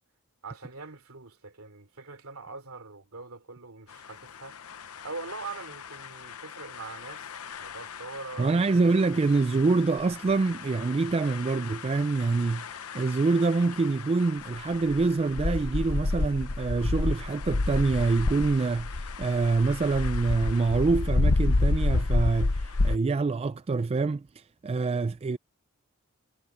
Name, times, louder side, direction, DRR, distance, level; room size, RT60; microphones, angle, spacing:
voice 1, 0.4-4.6 5.0-7.3 7.6-8.8, right 3 dB, 70° right, 3.2 m, -42 dB
sound 1, 4.7-23.0, left 2 dB, 80° left, 0.9 m, -30 dB
voice 2, 8.4-25.4, right 3 dB, 25° right, 0.3 m, -26 dB
head